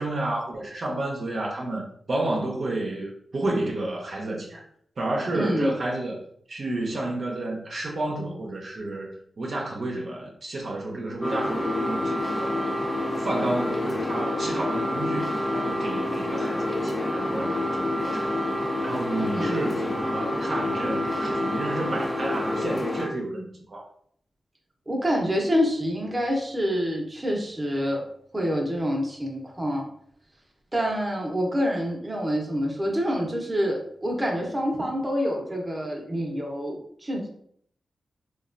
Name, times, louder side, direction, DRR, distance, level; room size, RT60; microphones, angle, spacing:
voice 1, 0.0-4.6 5.0-6.2 6.5-9.1 9.4-12.6 13.2-18.4 18.8-23.9, right 2 dB, 60° right, -2 dB, 0.6 m, -31 dB
voice 2, 5.3-5.7 19.3-19.5 24.9-28.0 28.3-29.9 30.7-37.3, equal, 20° right, -1 dB, 0.8 m, -27 dB
sound 1, 11.2-23.1, left 1 dB, 20° left, 0.4 m, -27 dB
3.0 x 2.3 x 2.5 m, 0.64 s
cardioid pair, 65°, 0 cm